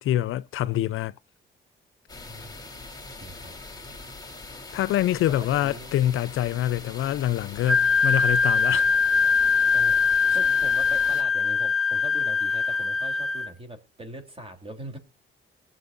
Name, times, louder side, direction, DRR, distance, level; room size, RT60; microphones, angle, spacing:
voice 1, 0.0-1.1 4.7-8.9, left 12 dB, 75° left, 0.4 m, -25 dB
sound 1, 2.1-11.2, left 3 dB, 15° left, 3.0 m, -42 dB
voice 2, 2.2-2.6 3.1-3.5 5.3-6.0 9.7-15.0, right 1 dB, 25° right, 3.3 m, -42 dB
Wind instrument woodwind instrument, 7.7-13.5, left 5 dB, ahead, 0.8 m, -22 dB
21.5 x 7.5 x 2.5 m
cardioid pair, 105°, 21 cm